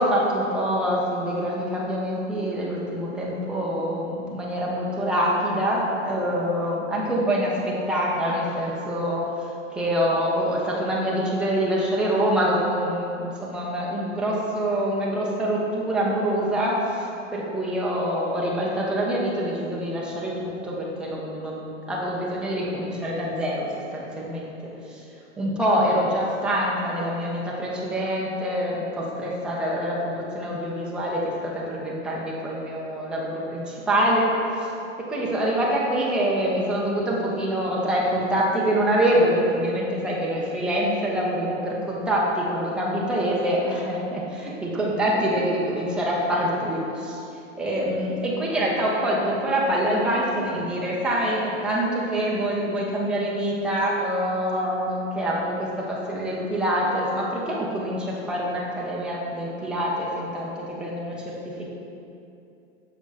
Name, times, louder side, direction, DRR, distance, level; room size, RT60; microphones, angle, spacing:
voice 1, 0.0-9.3 9.7-25.0 25.4-34.7 35.0-47.2 47.6-61.7, equal, 5° right, -5 dB, 0.4 m, -25 dB
6.5 x 4.8 x 3.4 m, 2.7 s
hypercardioid pair, 130°, 38 cm